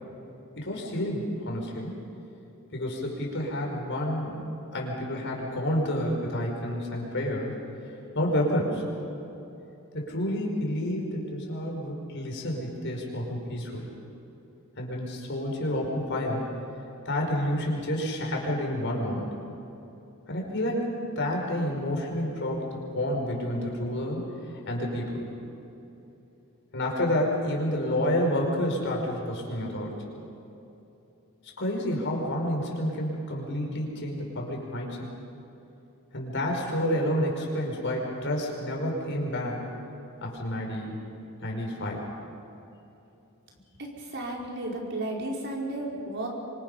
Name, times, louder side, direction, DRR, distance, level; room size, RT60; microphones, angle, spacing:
voice 1, 0.6-1.9 2.7-4.3 4.7-7.5 8.2-8.8 9.9-13.8 14.8-16.4 17.1-19.3 20.3-24.2 24.7-25.2 26.7-29.9 31.6-35.1 36.1-39.7 40.2-41.0 41.4-42.0, left 1 dB, 55° left, 0 dB, 5.4 m, -29 dB
voice 2, 43.8-46.3, right 1 dB, 55° right, -2 dB, 4.9 m, -33 dB
27.5 x 25.0 x 5.7 m, 3.0 s
head